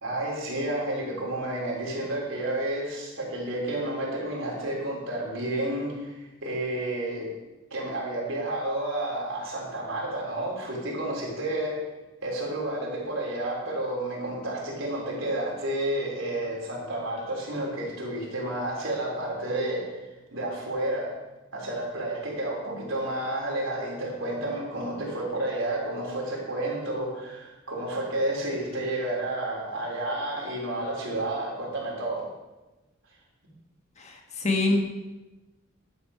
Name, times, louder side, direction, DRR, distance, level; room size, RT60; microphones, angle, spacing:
voice 1, 0.0-7.3 7.7-11.8 12.2-21.2 21.5-32.3, right 1 dB, 80° right, -3 dB, 3.5 m, -31 dB
voice 2, 34.0-34.8, left 2 dB, 35° left, 1 dB, 1.4 m, -25 dB
11.5 x 7.8 x 4.8 m, 1.1 s
head